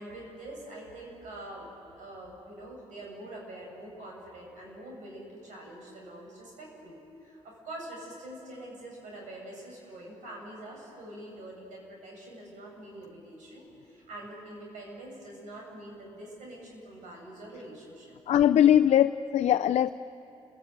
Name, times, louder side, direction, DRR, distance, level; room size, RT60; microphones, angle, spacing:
voice 1, 0.0-18.1 18.6-18.7, right 1 dB, 80° right, -1 dB, 8.0 m, -45 dB
voice 2, 18.3-19.9, left 10 dB, 60° left, 8 dB, 0.5 m, -21 dB
29.5 x 16.5 x 9.4 m, 2.8 s
cardioid pair, 80°, 13 cm